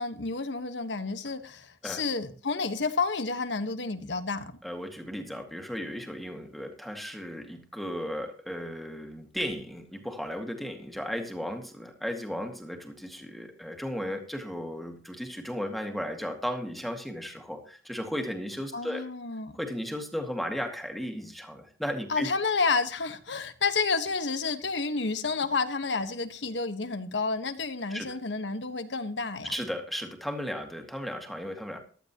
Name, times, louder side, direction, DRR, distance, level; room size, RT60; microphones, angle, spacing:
voice 1, 0.0-4.6 18.7-19.6 22.1-29.5, left 4 dB, 85° left, 1.3 m, -30 dB
voice 2, 4.6-19.0 19.5-22.3 27.9-28.1 29.4-31.8, equal, ahead, 2.0 m, -35 dB
15.0 x 12.0 x 3.0 m
head